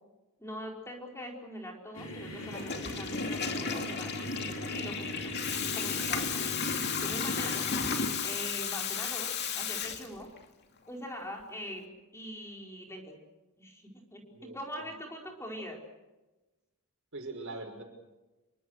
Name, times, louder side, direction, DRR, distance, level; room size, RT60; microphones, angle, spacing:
voice 1, 0.4-4.2 4.7-5.4 5.7-6.5 7.0-7.7 8.2-10.3 10.9-13.2 13.6-15.8, equal, 10° left, 1 dB, 4.8 m, -42 dB
sound 1, 1.9-8.1, left 1 dB, 70° left, 7.2 m, -40 dB
Water tap faucet / Toilet flush, 2.4-10.4, left 6 dB, 50° left, 2.7 m, -34 dB
voice 2, 14.3-14.9 17.1-17.8, right 2 dB, 60° right, 4 dB, 5.8 m, -42 dB
29.0 x 24.0 x 6.5 m, 1.1 s
head